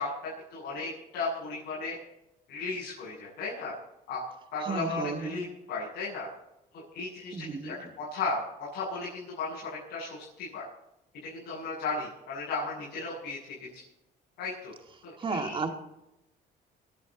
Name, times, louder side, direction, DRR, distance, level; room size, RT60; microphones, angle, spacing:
voice 1, 0.0-2.0 2.5-3.8 4.1-4.3 4.5-6.3 6.7-10.6 11.2-13.8 14.4-14.7 15.0-15.7, left 3 dB, 75° left, -7 dB, 7.7 m, -35 dB
voice 2, 4.7-5.5 7.3-7.8 15.2-15.7, right 4 dB, 30° right, 4 dB, 2.2 m, -33 dB
24.0 x 10.5 x 4.2 m, 0.89 s
cardioid pair, 110°, 17 cm